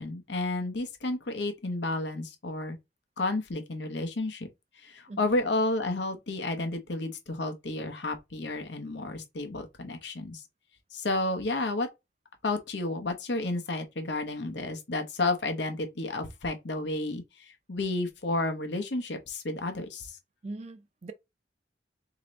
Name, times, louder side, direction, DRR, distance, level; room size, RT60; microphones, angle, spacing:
voice 1, 0.0-2.8 3.2-4.5 4.8-10.4 10.9-11.9 12.4-20.2, left 2 dB, 80° left, 0.9 m, -31 dB
voice 2, 20.4-21.1, right 2 dB, 35° right, 0.4 m, -41 dB
3.9 x 2.9 x 3.1 m
head